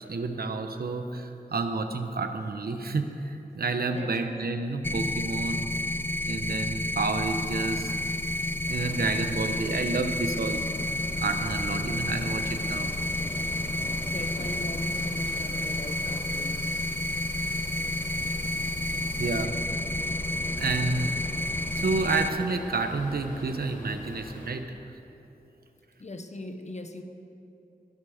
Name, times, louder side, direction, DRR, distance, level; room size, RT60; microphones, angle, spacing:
voice 1, 0.0-5.7 6.2-7.9 8.7-12.9 19.2-19.5 20.6-21.2 21.7-24.8, right 3 dB, 80° right, 6 dB, 1.1 m, -30 dB
sound 1, 4.8-22.3, left 1 dB, 15° left, 0.5 m, -30 dB
sound 2, 7.2-19.5, right 1 dB, 20° right, 1.3 m, -48 dB
sound 3, 8.6-24.5, left 1 dB, 65° left, 4.0 m, -41 dB
voice 2, 14.1-16.9 26.0-27.0, left 1 dB, 50° left, 6 dB, 1.3 m, -40 dB
21.5 x 11.5 x 5.1 m, 2.9 s
wide cardioid pair, 60°, 15 cm